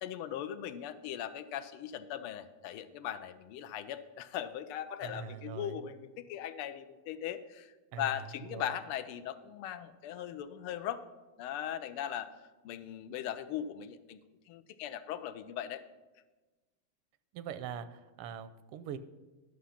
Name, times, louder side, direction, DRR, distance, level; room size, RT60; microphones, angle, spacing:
voice 1, 0.0-11.0 11.4-12.3 12.6-14.2 14.5-15.8, left 10 dB, 85° left, 10 dB, 1.5 m, -39 dB
voice 2, 5.0-5.8 7.9-8.8 17.3-19.0, right 7 dB, 85° right, 13 dB, 1.5 m, -42 dB
11.5 x 6.2 x 5.7 m, 1.2 s
omnidirectional pair, 2.4 m